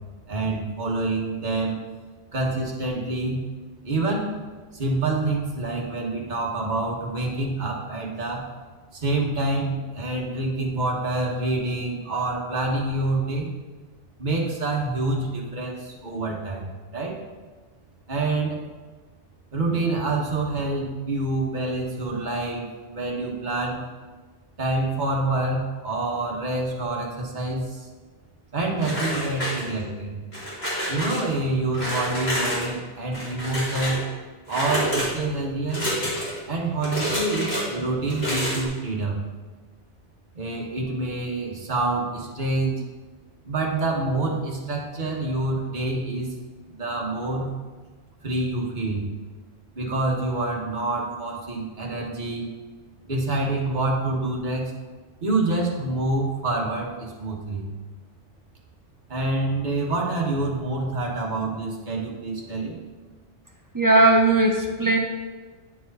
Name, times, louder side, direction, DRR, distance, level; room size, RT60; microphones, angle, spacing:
voice 1, 0.3-1.8 2.3-3.5 3.8-4.3 4.7-8.5 8.9-13.5 14.2-17.2 18.1-18.6 19.5-23.8 24.6-27.9 28.5-30.1 30.9-34.0 34.5-35.8 36.5-39.2 40.3-42.8 43.4-46.4 46.7-47.5 48.2-49.0 49.7-52.5 53.0-54.7 55.2-57.7 59.1-62.7, right 2 dB, 40° right, -2 dB, 1.3 m, -27 dB
sound 1, 28.8-29.9 30.3-31.2 31.7-32.7 33.1-34.0 34.5-35.1 35.7-36.4 36.8-37.6 38.1-38.7, equal, 55° left, 2.7 m, -28 dB
voice 2, 63.7-65.0, right 2 dB, 20° right, 1 dB, 0.6 m, -18 dB
9.5 x 4.7 x 4.1 m, 1.4 s
omnidirectional pair, 1.2 m